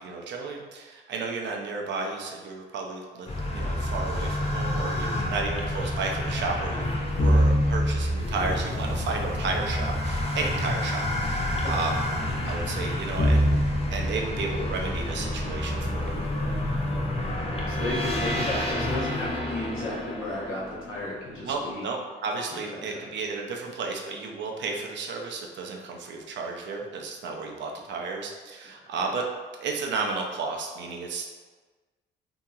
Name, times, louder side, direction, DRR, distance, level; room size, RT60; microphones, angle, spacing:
voice 1, 0.0-3.3 3.5-12.0 12.5-13.4 13.9-16.3 21.4-29.2 29.6-31.3, right 4 dB, 65° right, 1 dB, 0.5 m, -33 dB
sound 1, 3.3-21.2, left 1 dB, 30° left, 0.5 m, -27 dB
voice 2, 17.3-21.8 22.7-23.0, left 2 dB, 85° left, -6 dB, 0.9 m, -34 dB
2.8 x 2.7 x 2.3 m, 1.4 s
cardioid pair, 90°, 20 cm